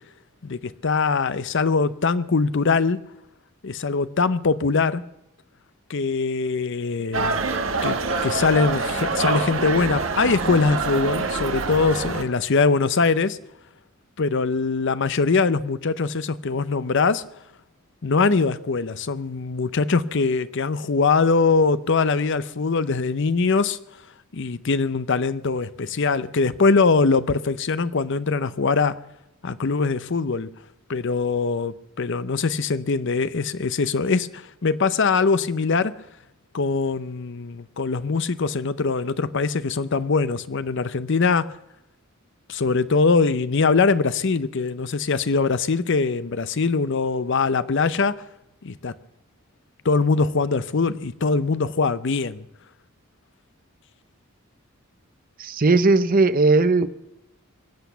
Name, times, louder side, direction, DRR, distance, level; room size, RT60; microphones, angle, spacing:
voice 1, 0.4-3.0 3.6-5.0 5.9-7.4 7.8-13.4 14.2-17.2 18.0-23.8 24.3-29.0 29.4-30.5 30.9-35.9 36.5-41.5 42.5-48.1 48.6-48.9 49.8-52.4, left 4 dB, 60° left, 0.6 m, -22 dB
sound 1, 7.1-12.2, right 3 dB, 65° right, 1.4 m, -25 dB
voice 2, 55.4-56.9, right 3 dB, 40° right, 0.7 m, -18 dB
24.0 x 8.1 x 6.9 m
head